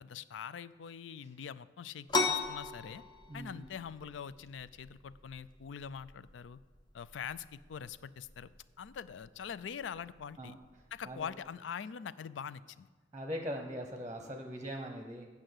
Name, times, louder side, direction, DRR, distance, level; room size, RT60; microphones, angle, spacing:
voice 1, 0.0-3.0 3.3-6.6 6.9-8.5 8.8-10.5 10.9-12.9, left 7 dB, 85° left, 16 dB, 0.4 m, -43 dB
sound 1, 2.1-11.5, left 3 dB, 25° left, 0.7 m, -40 dB
voice 2, 3.3-3.7 10.4-10.6 11.0-11.3 13.1-15.3, equal, 15° right, 4 dB, 0.8 m, -41 dB
8.9 x 5.8 x 7.7 m, 1.4 s
head